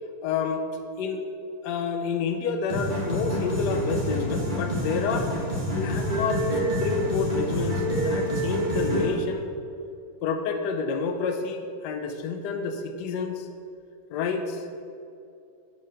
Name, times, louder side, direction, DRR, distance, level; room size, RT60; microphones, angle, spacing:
voice 1, 0.2-0.6 1.0-1.2 1.6-5.3 5.7-9.5 10.2-13.5 14.1-14.6, left 5 dB, 75° left, 6 dB, 1.2 m, -29 dB
sound 1, 2.7-9.1, equal, 25° right, 2.0 m, -27 dB
7.7 x 5.7 x 6.4 m, 2.5 s
omnidirectional pair, 1.9 m